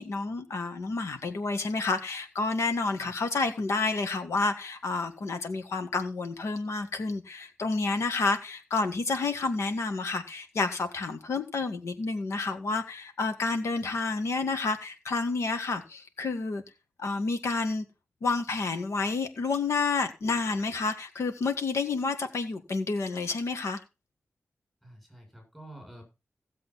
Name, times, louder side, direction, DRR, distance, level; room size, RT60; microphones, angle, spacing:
voice 1, 0.0-16.6 17.0-17.9 18.2-23.8, left 3 dB, 85° left, 1.8 m, -30 dB
voice 2, 24.8-26.0, right 1 dB, 5° left, 7.4 m, -48 dB
16.0 x 7.6 x 4.1 m
wide cardioid pair, 145°, 5 cm